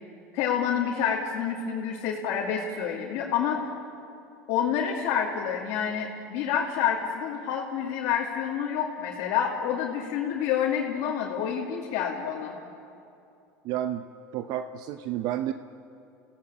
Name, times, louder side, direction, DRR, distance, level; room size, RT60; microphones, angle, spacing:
voice 1, 0.3-3.7 4.5-12.6, left 8 dB, 65° left, -3 dB, 2.8 m, -28 dB
voice 2, 13.6-14.0 14.3-15.5, right 12 dB, 60° right, 9 dB, 0.8 m, -30 dB
28.0 x 17.0 x 8.5 m, 2.6 s
hypercardioid pair, 90°, 8 cm